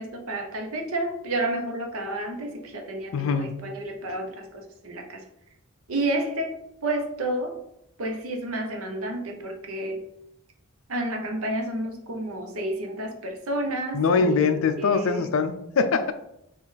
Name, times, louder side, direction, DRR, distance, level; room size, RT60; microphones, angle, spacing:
voice 1, 0.0-5.2 5.9-6.5 6.8-7.6 8.0-10.0 10.9-15.3, right 1 dB, 80° right, 3 dB, 0.7 m, -30 dB
voice 2, 3.1-3.5 13.9-16.1, left 5 dB, 70° left, 10 dB, 0.4 m, -23 dB
4.0 x 2.4 x 3.9 m, 0.80 s
head